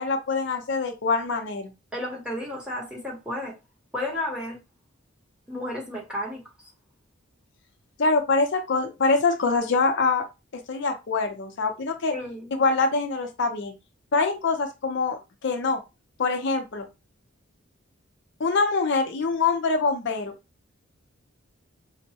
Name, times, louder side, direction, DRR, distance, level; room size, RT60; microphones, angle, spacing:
voice 1, 0.0-1.7 8.0-10.2 10.7-12.1 12.6-13.7 14.1-15.8 16.2-16.9 18.4-20.3, left 4 dB, 55° left, 0.5 m, -24 dB
voice 2, 1.9-3.5 3.9-4.6 5.5-6.4 12.1-12.5, left 1 dB, 5° right, 0.9 m, -32 dB
5.2 x 2.1 x 2.8 m
head